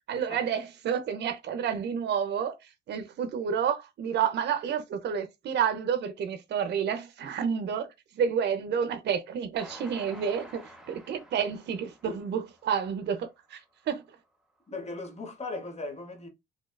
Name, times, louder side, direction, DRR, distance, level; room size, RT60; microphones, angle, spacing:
voice 1, 0.1-14.2, right 7 dB, 60° right, 0.5 m, -30 dB
Train, 9.6-13.0 13.5-13.6 13.9-14.0, right 1 dB, ahead, 0.7 m, -50 dB
voice 2, 14.7-16.3, left 2 dB, 35° left, 0.8 m, -38 dB
2.7 x 2.1 x 2.2 m
cardioid pair, 90°, 20 cm